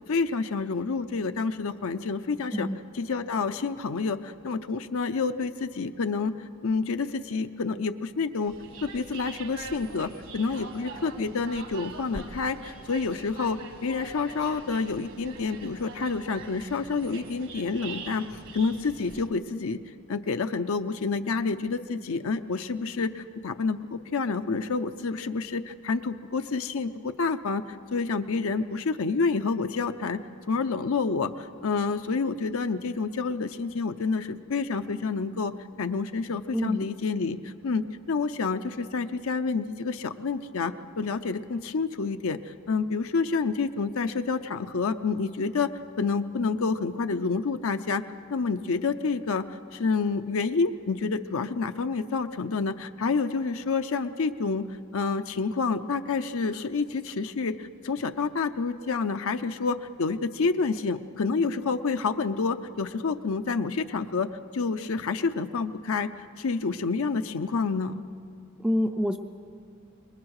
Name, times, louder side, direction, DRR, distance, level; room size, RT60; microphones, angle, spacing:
voice 1, 0.1-2.7 2.9-6.4 6.6-8.5 8.9-19.8 20.1-30.2 30.5-45.7 46.0-48.0 48.3-54.7 54.9-68.0, left 4 dB, 65° left, 8 dB, 0.6 m, -28 dB
sound 1, 8.5-19.3, right 3 dB, 60° right, 1.6 m, -43 dB
voice 2, 36.5-36.9 68.6-69.2, equal, 5° right, 5 dB, 0.5 m, -26 dB
26.5 x 21.5 x 4.8 m, 2.5 s
head